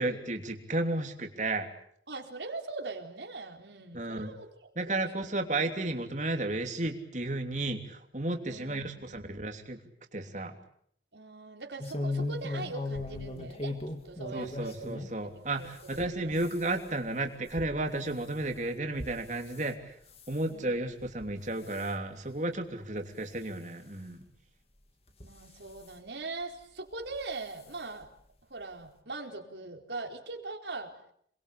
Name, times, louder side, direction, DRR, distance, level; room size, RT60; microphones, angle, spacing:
voice 1, 0.0-1.7 3.9-4.3 4.8-9.8 10.1-10.5 14.3-19.8 20.3-24.2, right 2 dB, 45° right, 5 dB, 3.1 m, -33 dB
voice 2, 2.1-5.3 8.4-9.2 11.1-13.8 14.0-16.3 20.5-20.9 25.2-28.1 28.5-30.9, right 3 dB, 80° right, 3 dB, 4.2 m, -41 dB
sound 1, 11.8-15.1 15.6-19.7 20.1-20.5 21.0-21.3 21.6-21.9 22.5-22.6 23.0-23.1 24.2-24.3 25.1-25.9 27.0-27.2 27.6-27.7 28.0-28.1, left 2 dB, 35° left, 2.7 m, -38 dB
28.0 x 22.0 x 8.5 m, 0.68 s
head